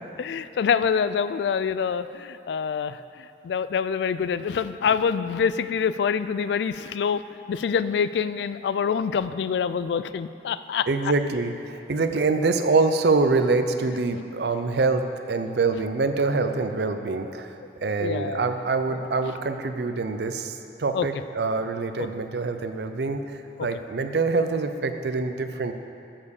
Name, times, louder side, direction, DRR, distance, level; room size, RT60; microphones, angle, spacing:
voice 1, 0.2-10.9 18.0-18.5 18.9-19.3 20.9-21.1 22.0-22.1, left 6 dB, 75° left, 14 dB, 0.3 m, -26 dB
voice 2, 10.9-17.5 17.8-25.7, right 3 dB, 70° right, 8 dB, 0.5 m, -25 dB
7.3 x 7.1 x 6.5 m, 2.7 s
head